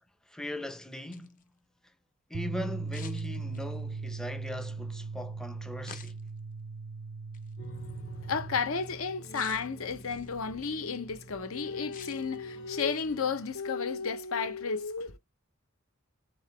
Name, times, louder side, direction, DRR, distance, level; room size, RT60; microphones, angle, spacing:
voice 1, 0.3-1.4 2.3-6.2, left 1 dB, 5° left, 0.5 m, -39 dB
sound 1, 0.9-1.4 2.9-3.9 5.8-6.4 7.3-7.5 9.3-10.4 11.9-12.4 12.8-13.2, left 7 dB, 40° left, 0.7 m, -50 dB
sound 2, 2.3-8.6, right 4 dB, 50° right, 0.4 m, -38 dB
sound 3, 7.6-13.5, right 1 dB, 60° left, 1.0 m, -47 dB
voice 2, 8.2-15.2, left 5 dB, 80° left, 0.8 m, -32 dB
3.9 x 3.7 x 3.2 m
head